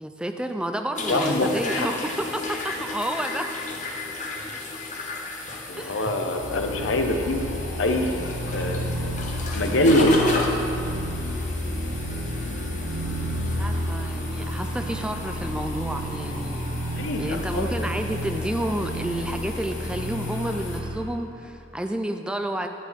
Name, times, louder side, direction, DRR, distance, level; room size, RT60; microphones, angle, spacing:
voice 1, 0.0-3.5 5.8-6.1 13.5-16.6 17.2-22.7, right 1 dB, 5° right, 5 dB, 0.3 m, -30 dB
sound 1, 1.0-20.8, left 2 dB, 40° left, 1.0 m, -34 dB
voice 2, 1.1-1.9 5.7-7.5 7.8-8.2 8.5-9.1 9.5-10.4 16.9-17.7, left 1 dB, 85° left, 3 dB, 0.9 m, -24 dB
sound 2, 6.3-21.1, equal, 35° right, 1.4 m, -31 dB
sound 3, 6.4-13.7, left 3 dB, 60° left, 0.5 m, -38 dB
11.0 x 9.3 x 3.6 m, 2.7 s
head